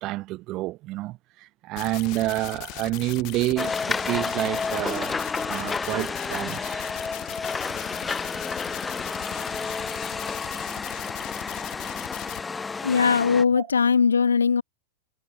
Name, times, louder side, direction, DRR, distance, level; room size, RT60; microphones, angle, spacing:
voice 1, 0.0-5.2 5.5-6.8, right 18 dB, 40° right, 4.4 m, -29 dB
sound 1, 1.8-12.4, left 27 dB, 40° left, 2.6 m, -39 dB
sound 2, 3.6-13.4, left 4 dB, 15° left, 6.3 m, -31 dB
voice 2, 12.8-14.6, left 6 dB, 75° left, 0.7 m, -20 dB
figure-of-eight pair, 90°, 0 cm